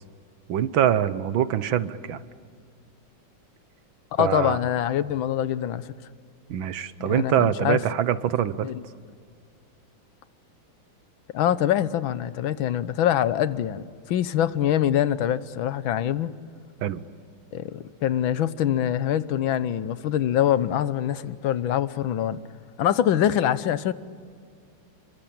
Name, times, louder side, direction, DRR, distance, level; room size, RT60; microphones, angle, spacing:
voice 1, 0.5-2.2 4.2-4.6 6.5-8.7 16.8-17.0, right 10 dB, 75° right, 1.7 m, -24 dB
voice 2, 4.1-5.9 7.0-7.8 8.6-8.8 11.3-16.4 17.5-22.4 22.8-23.9, left 11 dB, 80° left, 1.6 m, -24 dB
28.0 x 23.5 x 8.7 m
omnidirectional pair, 2.2 m